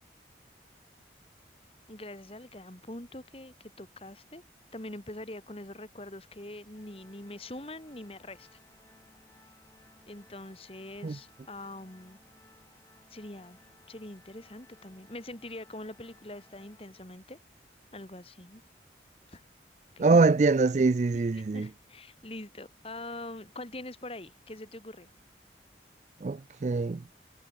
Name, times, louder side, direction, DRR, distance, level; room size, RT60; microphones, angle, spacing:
voice 1, 1.9-4.4 4.7-8.5 10.1-12.2 13.1-13.6 13.9-17.4 17.9-18.6 19.3-19.4 20.0-20.1 21.1-25.1, left 1 dB, 35° left, 2.4 m, -44 dB
Organ, 6.7-17.5, left 2 dB, 15° left, 5.0 m, -62 dB
voice 2, 20.0-21.7 26.2-27.0, right 3 dB, 40° right, 0.4 m, -24 dB
head